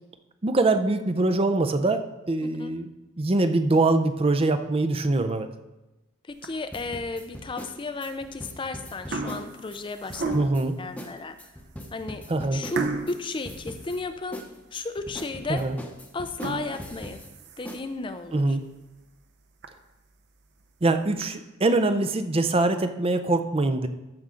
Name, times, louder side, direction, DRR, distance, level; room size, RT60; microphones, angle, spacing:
voice 1, 0.4-2.0 2.3-2.9 3.2-5.5 10.3-10.8 12.3-12.6 15.5-15.8 18.3-18.6 20.8-23.9, right 2 dB, 25° right, 9 dB, 0.5 m, -23 dB
voice 2, 2.4-2.7 6.3-10.4 10.8-11.3 11.9-12.2 12.5-14.4 14.7-15.7 16.1-17.2 17.6-18.6, left 3 dB, 25° left, 9 dB, 0.5 m, -34 dB
sound 1, 6.3-6.8 7.4-7.5 8.4-8.6 8.9-10.8 11.4-11.5 11.8-11.9 12.7-14.5 14.9-15.0 15.5-15.6 16.2-17.8 18.3-18.4 18.8-18.9 19.2-19.3 19.6-19.7 20.6-21.2, right 3 dB, 55° right, 0.8 m, -34 dB
sound 2, 6.7-9.8 10.1-10.7 11.0-11.1 11.4-13.2 13.5-14.0 14.3-17.3 17.7-17.8, equal, 5° left, 0.8 m, -40 dB
14.0 x 6.2 x 3.8 m, 1.0 s
head